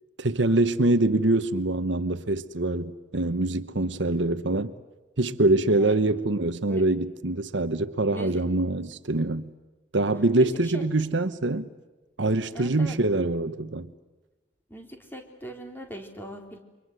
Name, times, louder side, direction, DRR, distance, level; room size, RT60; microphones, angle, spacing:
voice 1, 0.2-4.7 5.2-9.5 9.9-11.7 12.2-13.9, right 2 dB, 70° right, 1.1 m, -24 dB
voice 2, 10.4-10.9 12.5-13.0 14.7-16.6, right 1 dB, 10° left, 3.7 m, -40 dB
29.5 x 25.0 x 8.1 m
head